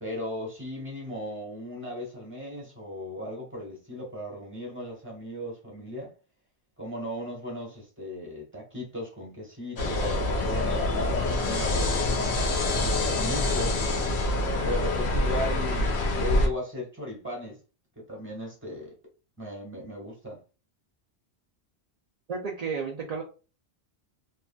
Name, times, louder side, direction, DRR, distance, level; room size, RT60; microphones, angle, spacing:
voice 1, 0.0-6.1 6.8-12.4 12.8-13.8 14.6-17.6 17.9-18.9 19.4-20.4, left 1 dB, 10° right, 1.3 m, -37 dB
sound 1, 9.8-16.5, left 2 dB, 70° left, 1.0 m, -26 dB
voice 2, 22.3-23.2, right 5 dB, 45° right, 0.5 m, -32 dB
3.2 x 2.5 x 2.2 m
omnidirectional pair, 1.1 m